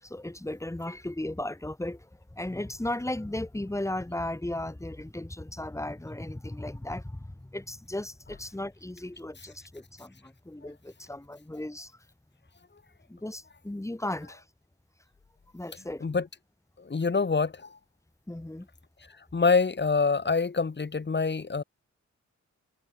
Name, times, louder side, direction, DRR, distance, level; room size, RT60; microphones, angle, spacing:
voice 1, 0.0-11.9 13.1-14.4 15.5-16.1 18.3-18.7, left 1 dB, 10° left, 7.0 m, -36 dB
voice 2, 16.8-17.7 19.3-21.6, left 4 dB, 40° left, 5.9 m, -25 dB
wide cardioid pair, 175°, 29 cm